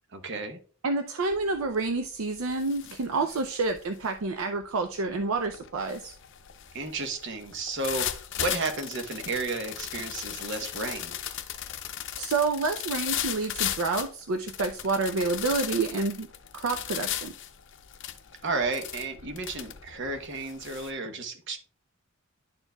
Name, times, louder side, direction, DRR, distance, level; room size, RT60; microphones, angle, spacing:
voice 1, 0.1-0.6 6.7-11.2 18.4-21.6, right 3 dB, 60° right, 7 dB, 0.9 m, -33 dB
voice 2, 0.8-6.1 12.2-16.3 16.5-17.3, right 3 dB, 75° right, 7 dB, 0.5 m, -28 dB
sound 1, 1.3-1.6 2.0-20.9, left 11 dB, 65° left, 0.6 m, -37 dB
11.0 x 4.5 x 2.2 m, 0.42 s
head